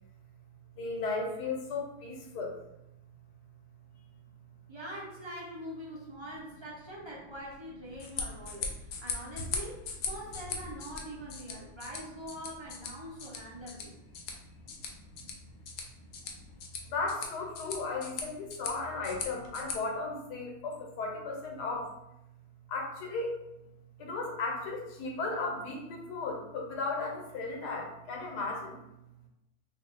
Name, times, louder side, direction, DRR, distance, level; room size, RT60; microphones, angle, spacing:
voice 1, 0.7-2.6 15.1-15.3 15.9-16.0 16.9-21.9 22.7-23.3 24.0-28.8, left 3 dB, 85° left, 0 dB, 1.4 m, -35 dB
voice 2, 4.7-14.0, equal, 35° right, -5 dB, 0.4 m, -44 dB
sound 1, 7.9-19.7, left 4 dB, 70° left, 1.0 m, -40 dB
3.0 x 2.7 x 3.4 m, 0.87 s
omnidirectional pair, 1.7 m